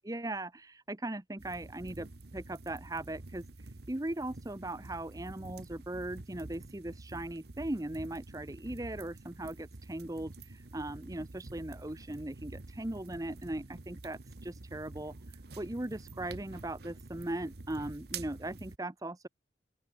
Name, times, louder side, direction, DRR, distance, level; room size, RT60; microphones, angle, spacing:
voice 1, 0.1-2.1 2.3-19.3, right 1 dB, 20° right, 0.8 m, -39 dB
sound 1, 1.4-18.8, right 3 dB, 55° right, 1.1 m, -48 dB
open air
head